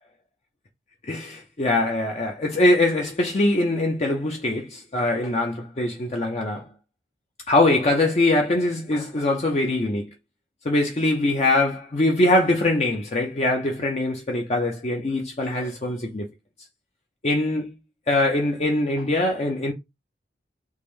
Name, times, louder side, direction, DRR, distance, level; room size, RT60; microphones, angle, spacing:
voice 1, 1.1-6.7 7.5-10.1 10.6-16.3 17.2-17.7 18.1-19.7, left 2 dB, 40° left, 0.5 m, -22 dB
3.5 x 2.5 x 3.2 m
head